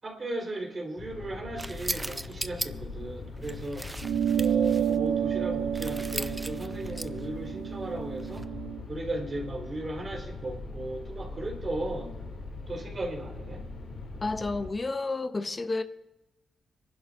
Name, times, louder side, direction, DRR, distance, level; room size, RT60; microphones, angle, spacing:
voice 1, 0.0-3.9 4.3-8.5 8.9-12.2 12.7-13.7, right 2 dB, 45° right, 4.0 m, -36 dB
sound 1, 1.0-14.7, left 3 dB, 75° left, 2.4 m, -41 dB
sound 2, 1.6-2.7 3.4-5.0 5.7-7.3 8.2-8.4, right 1 dB, 15° right, 0.5 m, -37 dB
sound 3, 4.0-8.8, right 9 dB, 80° right, 0.4 m, -30 dB
voice 2, 14.2-15.8, left 3 dB, 35° left, 0.7 m, -30 dB
25.0 x 11.5 x 2.6 m
supercardioid pair, 55°, 0 cm